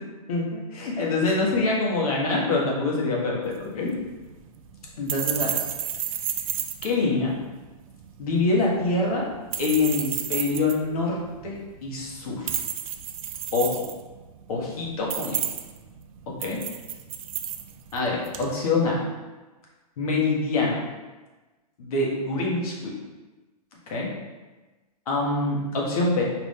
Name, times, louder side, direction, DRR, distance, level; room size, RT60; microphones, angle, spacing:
voice 1, 0.3-3.9 5.0-5.6 6.8-7.4 8.2-9.3 9.6-11.6 11.8-12.6 13.5-13.9 14.5-15.4 16.3-16.6 17.9-19.0 20.0-20.8 21.8-22.9 23.9-24.1 25.1-26.2, left 3 dB, 70° left, -2 dB, 1.3 m, -25 dB
sound 1, 3.4-18.5, right 10 dB, 60° right, 0.4 m, -33 dB
4.8 x 2.6 x 3.6 m, 1.2 s
hypercardioid pair, 135°, 20 cm